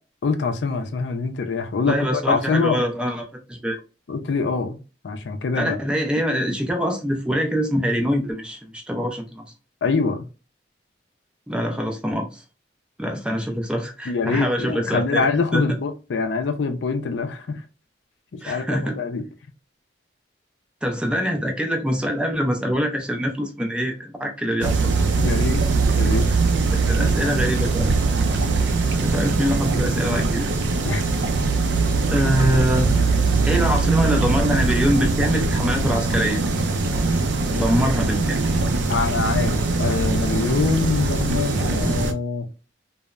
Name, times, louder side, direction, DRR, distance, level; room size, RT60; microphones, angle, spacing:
voice 1, 0.2-2.8 4.1-5.8 9.8-10.3 14.1-17.6 18.3-19.2 25.2-25.6 26.0-26.3 30.8-31.0 38.9-42.5, left 4 dB, 75° left, 0.4 m, -24 dB
voice 2, 1.9-3.8 5.6-9.4 11.5-12.4 13.0-15.2 15.5-15.6 18.4-19.0 20.8-24.9 26.7-27.9 29.0-30.5 32.1-32.9 33.5-36.4 37.5-38.6, equal, 5° right, 0.4 m, -24 dB
sound 1, 24.6-42.1, right 3 dB, 70° right, 0.4 m, -21 dB
3.0 x 2.0 x 2.3 m
head